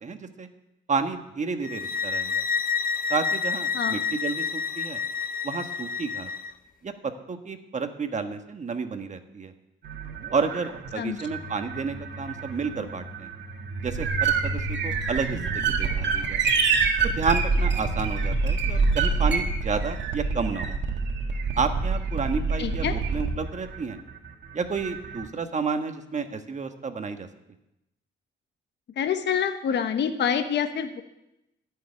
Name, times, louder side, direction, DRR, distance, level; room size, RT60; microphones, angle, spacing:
voice 1, 0.0-0.5 0.9-2.4 3.1-5.0 5.4-6.3 6.8-9.5 10.3-13.3 13.8-16.4 17.0-20.8 21.6-24.0 24.5-27.3, right 5 dB, 35° right, 7 dB, 1.4 m, -31 dB
sound 1, 1.6-6.5, left 5 dB, 45° left, 0.9 m, -29 dB
sound 2, 9.8-25.3, right 4 dB, 65° right, 1.8 m, -27 dB
voice 2, 22.6-22.9 29.0-31.0, left 8 dB, 60° left, 8 dB, 1.2 m, -26 dB
13.5 x 6.9 x 9.7 m, 0.89 s
cardioid pair, 90°, 20 cm